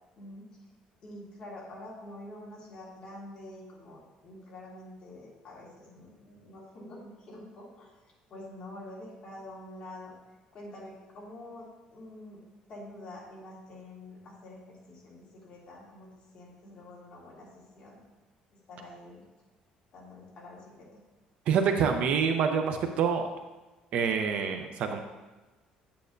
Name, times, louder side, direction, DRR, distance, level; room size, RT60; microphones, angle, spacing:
voice 1, 0.2-0.5 1.0-7.9 8.3-10.1 10.5-12.4 12.7-16.1 16.3-18.0 18.5-19.2 19.9-21.0, left 1 dB, 35° left, -5 dB, 2.0 m, -47 dB
voice 2, 21.5-23.3 23.9-25.0, right 6 dB, 55° right, 6 dB, 0.6 m, -26 dB
8.6 x 8.1 x 2.6 m, 1.2 s
cardioid pair, 175°, 3 cm